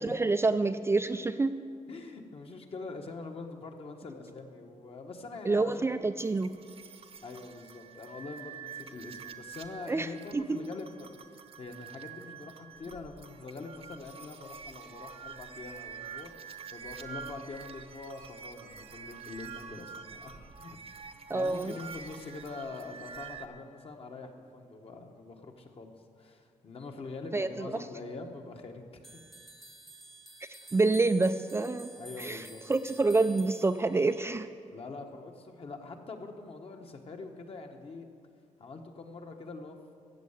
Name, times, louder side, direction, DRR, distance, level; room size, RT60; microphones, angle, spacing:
voice 1, 0.0-1.6 5.5-6.5 9.9-10.6 21.3-21.7 27.3-27.7 30.5-31.9 32.2-34.5, right 3 dB, 20° right, 9 dB, 0.4 m, -28 dB
voice 2, 1.9-5.9 7.2-20.8 21.3-29.0 32.0-32.6 34.7-38.1 38.6-39.8, left 3 dB, 45° left, 3 dB, 1.4 m, -44 dB
sound 1, 6.2-23.5, right 6 dB, 45° right, 0.9 m, -47 dB
sound 2, 29.0-34.3, right 2 dB, ahead, 0.9 m, -51 dB
14.5 x 7.7 x 8.3 m, 2.3 s
cardioid pair, 115°, 14 cm